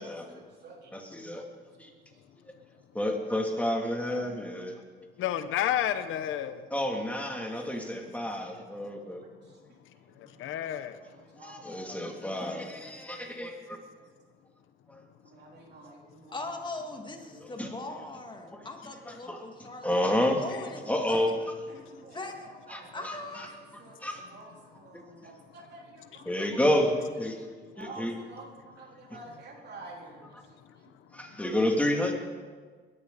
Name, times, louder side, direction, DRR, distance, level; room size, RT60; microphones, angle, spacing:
voice 1, 0.0-1.3 2.1-2.2 9.1-9.3 10.1-13.4 15.3-16.4 17.2-17.5 21.7-22.2 22.7-23.1 23.8-26.3 27.8-30.6, right 3 dB, 55° right, 3.7 m, -50 dB
voice 2, 0.9-1.4 1.8-1.9 2.9-4.7 6.7-9.2 11.4-13.8 14.9-15.0 17.6-17.7 18.5-18.6 19.1-19.4 19.8-20.4 20.9-21.3 22.7-23.5 24.0-24.2 26.2-26.9 27.2-27.4 27.8-28.1 31.1-32.1, left 1 dB, 5° left, 2.8 m, -30 dB
voice 3, 5.2-6.7 10.2-11.0 26.1-26.3, left 11 dB, 85° left, 0.9 m, -31 dB
voice 4, 16.3-21.3 22.1-22.5 22.9-24.7, left 2 dB, 25° left, 2.1 m, -41 dB
21.5 x 12.0 x 4.1 m
cardioid pair, 90°, 20 cm